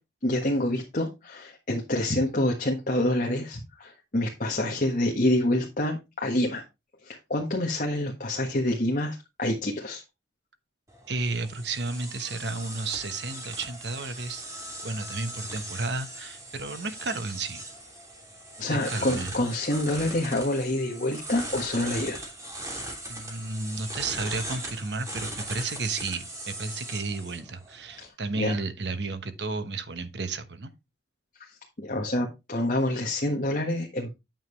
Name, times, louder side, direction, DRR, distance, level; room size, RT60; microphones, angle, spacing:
voice 1, 0.2-6.6 7.0-10.0 18.6-22.2 28.0-28.5 31.4-34.1, left 1 dB, 45° left, 1.5 m, -27 dB
sound 1, 10.9-28.1, right 1 dB, 20° right, 2.9 m, -39 dB
voice 2, 11.1-14.4 14.8-17.6 18.7-19.3 23.1-30.7, right 3 dB, 65° right, 1.1 m, -32 dB
9.0 x 7.3 x 3.2 m
head